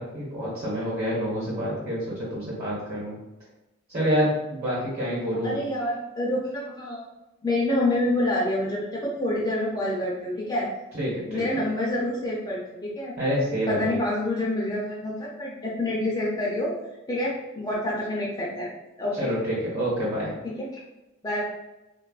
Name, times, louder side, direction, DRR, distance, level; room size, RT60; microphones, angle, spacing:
voice 1, 0.0-3.2 3.9-5.6 10.9-11.6 13.2-14.0 19.2-20.4, equal, 50° right, -6 dB, 1.1 m, -27 dB
voice 2, 5.4-7.1 7.4-10.7 11.2-13.1 13.7-16.7 17.1-18.7 19.0-19.3 20.4-20.8 21.2-21.4, left 1 dB, 20° left, -4 dB, 0.4 m, -27 dB
3.3 x 2.2 x 2.3 m, 1.0 s
head